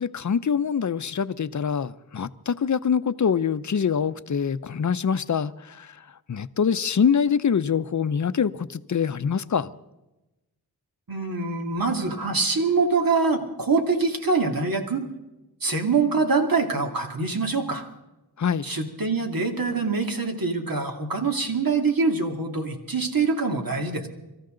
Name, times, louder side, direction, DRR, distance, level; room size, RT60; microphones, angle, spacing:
voice 1, 0.0-5.5 6.3-9.7 18.4-18.6, left 7 dB, 50° left, 0.7 m, -24 dB
voice 2, 11.1-15.0 15.6-17.8 18.6-24.1, right 4 dB, 60° right, 2.6 m, -24 dB
25.0 x 14.0 x 3.9 m
cardioid pair, 60°, 39 cm